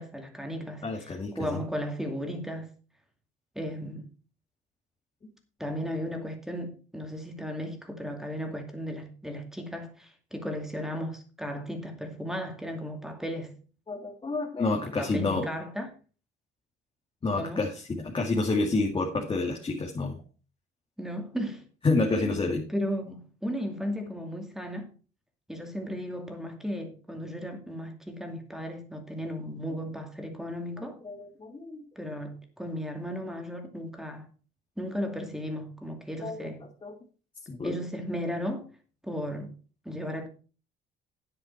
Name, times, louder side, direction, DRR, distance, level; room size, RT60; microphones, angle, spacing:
voice 1, 0.0-2.7 3.6-4.1 5.6-13.5 15.0-15.9 17.4-17.6 21.0-21.6 22.2-22.4 22.7-24.9 25.5-31.0 32.0-34.3 34.8-36.6 37.6-38.6 39.0-39.5 39.9-40.3, equal, ahead, 2.4 m, -35 dB
voice 2, 0.8-1.6 13.9-15.5 17.2-20.2 21.8-22.7 31.0-31.8 36.2-36.5 36.8-36.9 37.5-37.8, left 3 dB, 25° left, 2.1 m, -29 dB
9.6 x 8.7 x 4.6 m
cardioid pair, 125°, 21 cm